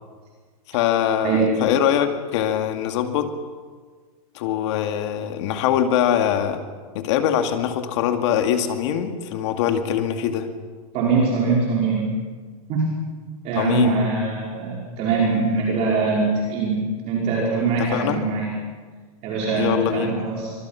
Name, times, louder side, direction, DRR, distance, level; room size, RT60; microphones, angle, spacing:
voice 1, 0.7-3.3 4.3-6.6 6.9-10.5 13.6-14.0 17.8-18.2 19.5-20.1, left 9 dB, 50° left, 6 dB, 2.2 m, -22 dB
voice 2, 10.9-12.1 12.7-12.9 13.4-18.5 19.2-20.5, right 4 dB, 35° right, -4 dB, 4.9 m, -22 dB
24.5 x 23.0 x 5.8 m, 1.5 s
supercardioid pair, 155°, 19 cm